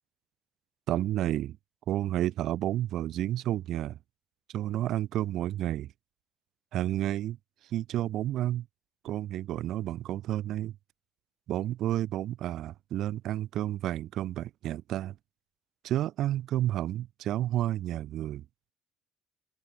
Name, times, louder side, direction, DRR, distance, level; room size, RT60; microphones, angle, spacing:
voice 1, 0.9-1.6 1.9-4.0 4.5-5.9 6.7-7.4 7.7-8.7 9.0-10.7 11.5-15.2 15.8-18.4, right 13 dB, 65° right, 1.5 m, -31 dB
cardioid pair, 120°, 0 cm